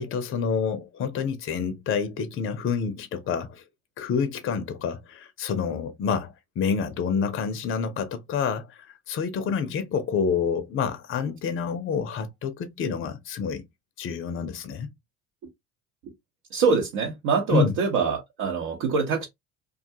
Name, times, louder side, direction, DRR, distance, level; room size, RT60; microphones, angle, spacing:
voice 1, 0.0-3.6 4.0-13.6 14.0-14.9 17.5-17.8, left 6 dB, 40° left, 0.5 m, -28 dB
voice 2, 16.5-19.3, right 5 dB, 65° right, 0.9 m, -24 dB
2.3 x 2.3 x 2.7 m
hypercardioid pair, 65°, 35 cm